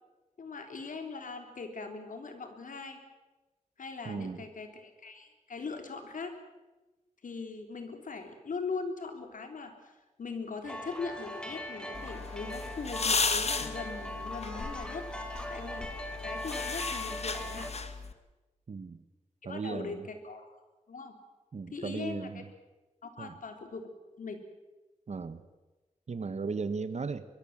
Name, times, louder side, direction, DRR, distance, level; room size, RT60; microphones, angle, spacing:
voice 1, 0.4-3.0 3.8-6.3 7.2-15.1 15.5-15.9 16.2-17.7 19.4-20.6 20.9-21.2 21.7-22.4 23.0-23.9 24.2-24.4, left 4 dB, 80° left, 5 dB, 3.6 m, -40 dB
voice 2, 4.0-4.4 18.7-19.0 19.4-20.0 21.5-22.5 23.2-23.3 25.1-25.4 26.1-27.3, right 4 dB, 55° right, 12 dB, 1.4 m, -36 dB
sound 1, 10.6-17.7, left 1 dB, 5° left, 3.7 m, -40 dB
sound 2, 11.9-18.1, left 4 dB, 55° left, 1.8 m, -35 dB
23.0 x 22.5 x 7.5 m, 1.1 s
wide cardioid pair, 105°, 13 cm